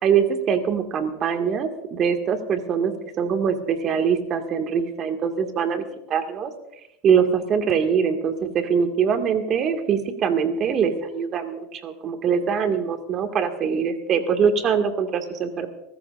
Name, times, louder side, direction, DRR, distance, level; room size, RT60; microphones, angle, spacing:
voice 1, 0.0-2.9 3.2-6.5 7.0-15.7, right 7 dB, 40° right, 6 dB, 2.0 m, -23 dB
24.0 x 14.0 x 2.6 m, 0.86 s
supercardioid pair, 120°, 0 cm